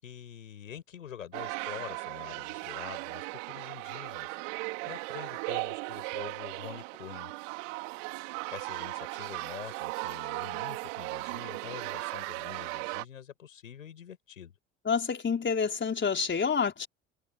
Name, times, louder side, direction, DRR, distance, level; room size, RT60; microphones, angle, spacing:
voice 1, 0.0-7.3 8.5-14.5, left 9 dB, 85° left, 7.4 m, -46 dB
sound 1, 1.3-13.0, right 28 dB, 70° right, 3.4 m, -37 dB
voice 2, 14.9-16.9, left 6 dB, 30° left, 4.6 m, -28 dB
hypercardioid pair, 60°, 38 cm